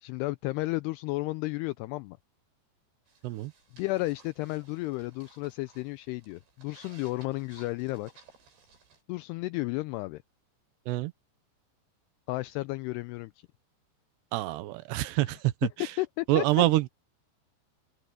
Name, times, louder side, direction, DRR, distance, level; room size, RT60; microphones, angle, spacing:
voice 1, 0.0-2.2 3.7-8.1 9.1-10.2 12.3-13.3 15.3-15.4 15.8-16.9, left 21 dB, 85° left, 2.3 m, -33 dB
sound 1, 3.1-9.0, right 5 dB, 60° right, 8.3 m, -59 dB
voice 2, 14.3-15.5 16.3-16.9, right 16 dB, 75° right, 2.9 m, -26 dB
open air
omnidirectional pair, 5.2 m